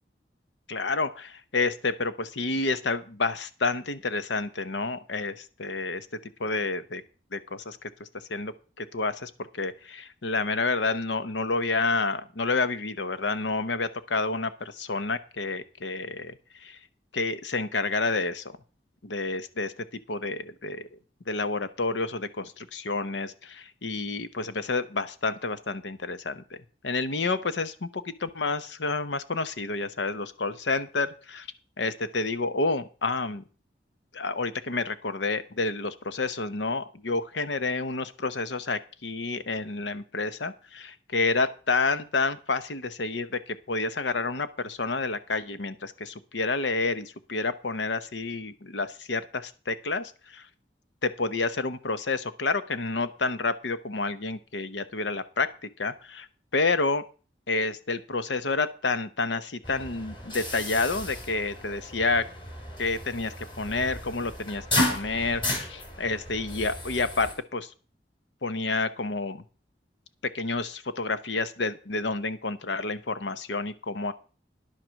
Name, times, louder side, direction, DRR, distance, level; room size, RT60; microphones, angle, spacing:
voice 1, 0.7-6.1 6.4-7.0 7.3-16.3 16.6-16.8 17.1-18.6 19.0-20.9 21.3-26.4 26.8-31.5 31.8-33.4 34.1-50.5 51.0-56.3 56.5-57.0 57.5-62.3 62.8-67.7 68.4-69.4 70.2-74.1, left 3 dB, 85° left, 12 dB, 0.9 m, -29 dB
sound 1, 59.6-67.4, left 1 dB, 25° left, 3.0 m, -33 dB
10.5 x 7.5 x 6.3 m, 0.37 s
head